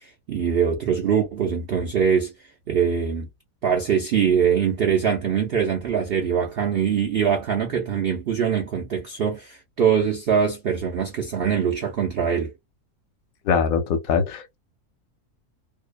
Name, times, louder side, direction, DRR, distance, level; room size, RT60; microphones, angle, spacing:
voice 1, 0.0-2.3 2.7-3.3 3.6-12.5, right 7 dB, 70° right, 0.5 m, -23 dB
voice 2, 13.4-14.6, left 6 dB, 70° left, 1.0 m, -22 dB
2.7 x 2.1 x 2.2 m
omnidirectional pair, 1.6 m